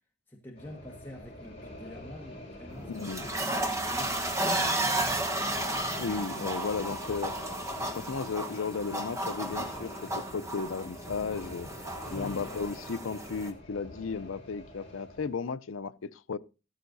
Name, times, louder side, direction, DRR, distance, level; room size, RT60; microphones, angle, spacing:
voice 1, 0.3-4.2 12.1-12.6, left 1 dB, 10° left, 1.4 m, -46 dB
sound 1, 0.6-15.3, left 1 dB, 30° left, 4.9 m, -45 dB
sound 2, 2.7-13.5, right 1 dB, 15° right, 1.0 m, -33 dB
voice 2, 2.9-3.3 6.0-7.4 8.0-11.7 12.1-16.4, left 5 dB, 80° left, 0.5 m, -34 dB
14.0 x 13.5 x 2.6 m
head